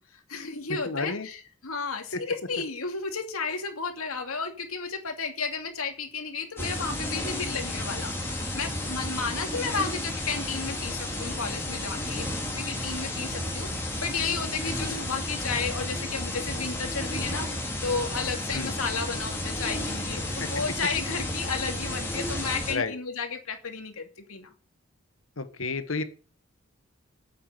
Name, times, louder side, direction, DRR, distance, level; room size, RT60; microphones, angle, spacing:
voice 1, 0.1-13.7 14.0-24.5, left 5 dB, 90° left, 5 dB, 2.7 m, -33 dB
voice 2, 0.8-1.3 2.1-2.2 18.5-18.7 20.4-20.5 22.7-22.9 25.4-26.0, left 3 dB, 70° left, 10 dB, 1.5 m, -31 dB
sound 1, 6.6-22.7, left 1 dB, 10° left, 3.2 m, -32 dB
9.2 x 8.8 x 6.8 m, 0.39 s
head